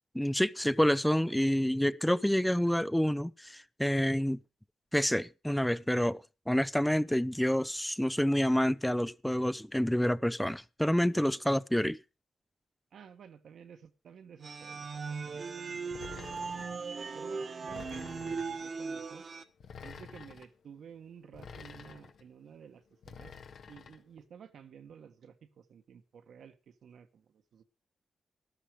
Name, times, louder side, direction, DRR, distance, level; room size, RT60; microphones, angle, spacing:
voice 1, 0.1-4.4 4.9-12.0, equal, 5° left, 0.7 m, -28 dB
voice 2, 12.9-19.2 19.8-23.3 23.7-27.6, right 7 dB, 75° right, 1.7 m, -53 dB
sound 1, 14.4-19.4, right 5 dB, 55° right, 1.5 m, -38 dB
sound 2, 15.9-16.8 17.7-18.6 19.6-20.5 21.3-22.2 23.0-24.0, left 6 dB, 70° left, 1.8 m, -48 dB
12.5 x 12.5 x 4.9 m
supercardioid pair, 50°, 0 cm